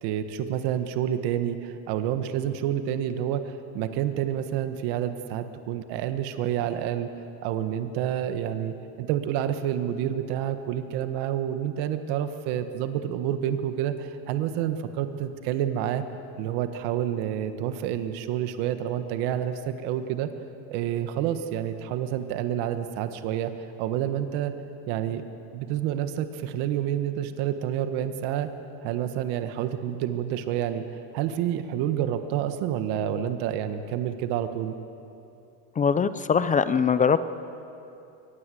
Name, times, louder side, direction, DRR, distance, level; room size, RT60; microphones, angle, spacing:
voice 1, 0.0-7.1 7.4-16.0 16.4-20.3 20.7-24.5 24.9-25.2 25.5-28.5 28.8-30.8 31.1-34.7, right 10 dB, 75° right, 9 dB, 1.5 m, -28 dB
voice 2, 35.8-37.3, left 6 dB, 20° left, 13 dB, 0.5 m, -22 dB
23.5 x 20.5 x 7.8 m, 2.7 s
cardioid pair, 150°, 40 cm